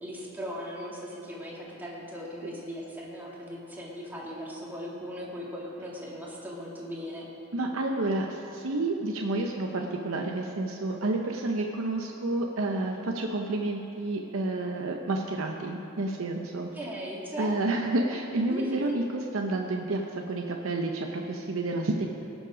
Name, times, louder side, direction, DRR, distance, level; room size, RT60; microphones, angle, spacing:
voice 1, 0.0-7.3 16.7-17.6 18.5-19.0, equal, 10° right, -5 dB, 2.1 m, -38 dB
voice 2, 7.5-16.7 17.4-19.0 19.3-22.1, right 2 dB, 75° right, 2 dB, 0.7 m, -30 dB
18.0 x 7.3 x 5.0 m, 2.9 s
head